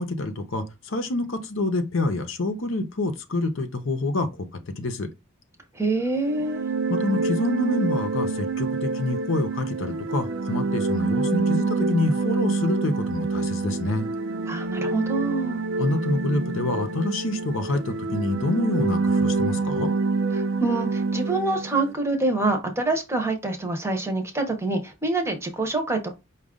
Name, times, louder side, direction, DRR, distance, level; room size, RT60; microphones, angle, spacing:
voice 1, 0.0-4.5 4.8-5.1 6.9-14.1 15.8-19.9, left 2 dB, 70° left, 0.8 m, -27 dB
voice 2, 5.8-6.6 14.5-15.6 20.3-26.1, right 2 dB, 15° right, 0.7 m, -26 dB
sound 1, 6.2-21.9, right 3 dB, 65° right, 0.5 m, -27 dB
5.1 x 2.4 x 3.6 m
head